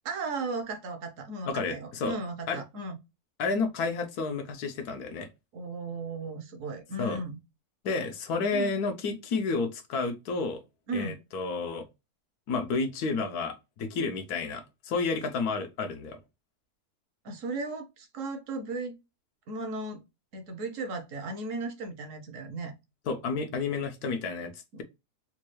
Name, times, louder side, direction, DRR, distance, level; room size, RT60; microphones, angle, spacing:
voice 1, 0.0-3.0 5.5-7.4 8.5-8.8 10.9-11.2 17.2-18.9 19.5-20.0 20.3-22.7 24.7-24.8, right 3 dB, 65° right, 1.1 m, -36 dB
voice 2, 1.5-2.1 2.5-2.6 3.4-5.3 7.0-7.2 7.8-10.6 10.9-11.9 12.5-16.2 23.1-24.5, left 4 dB, 85° left, 1.3 m, -31 dB
4.3 x 2.3 x 3.0 m
omnidirectional pair, 1.6 m